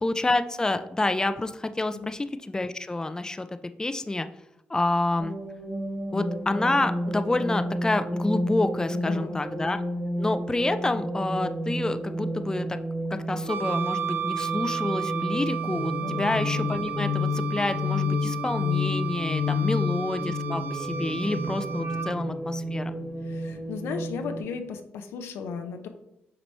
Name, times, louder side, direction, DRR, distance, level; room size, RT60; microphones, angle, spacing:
voice 1, 0.0-3.5 3.8-4.3 4.7-5.4 6.1-9.8 10.2-12.8 13.3-23.0, left 2 dB, 15° left, 10 dB, 0.4 m, -28 dB
sound 1, 5.2-24.4, left 2 dB, 15° right, 1.7 m, -30 dB
voice 2, 8.9-9.4 16.0-16.3 19.6-19.9 23.2-25.9, left 6 dB, 85° left, 7 dB, 0.7 m, -36 dB
Wind instrument woodwind instrument, 13.5-22.1, right 9 dB, 55° right, 0.4 m, -34 dB
5.9 x 3.1 x 5.4 m, 0.82 s
cardioid pair, 65°, 4 cm